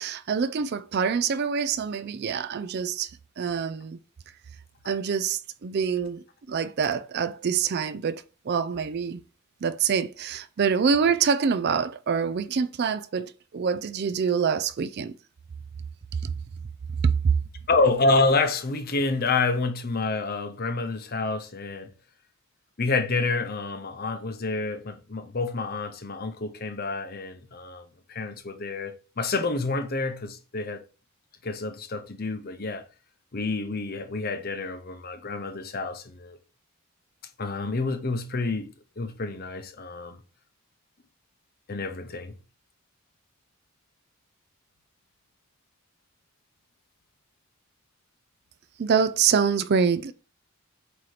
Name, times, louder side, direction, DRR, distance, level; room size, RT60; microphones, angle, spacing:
voice 1, 0.0-3.1 3.4-4.0 4.9-9.2 9.6-15.1 16.2-16.3 17.0-17.3 48.8-50.1, right 6 dB, 50° right, 0.4 m, -25 dB
voice 2, 17.7-21.9 22.8-30.8 31.4-32.8 33.3-36.4 37.4-38.7 39.0-40.2 41.7-42.4, left 3 dB, 45° left, 0.8 m, -28 dB
7.8 x 2.9 x 4.9 m
head